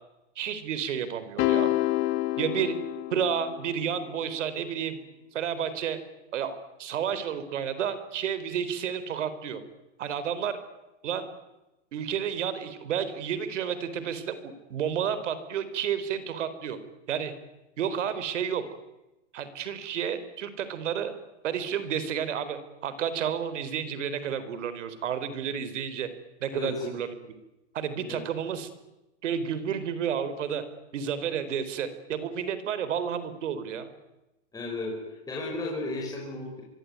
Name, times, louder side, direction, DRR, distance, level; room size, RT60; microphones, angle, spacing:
voice 1, 0.4-1.7 2.4-2.8 3.1-5.0 5.3-6.0 6.3-9.6 10.0-10.6 11.0-11.3 11.9-16.8 17.1-17.3 17.8-18.6 19.3-21.1 21.4-26.1 26.4-27.1 27.7-28.7 29.2-30.6 30.9-33.9, right 8 dB, 80° right, 13 dB, 4.1 m, -31 dB
sound 1, 1.4-3.8, left 16 dB, 35° left, 1.1 m, -27 dB
voice 2, 26.5-26.8 27.9-28.2 34.5-36.6, left 2 dB, 10° left, -3 dB, 5.7 m, -34 dB
24.5 x 24.0 x 9.5 m, 1.0 s
supercardioid pair, 150°, 36 cm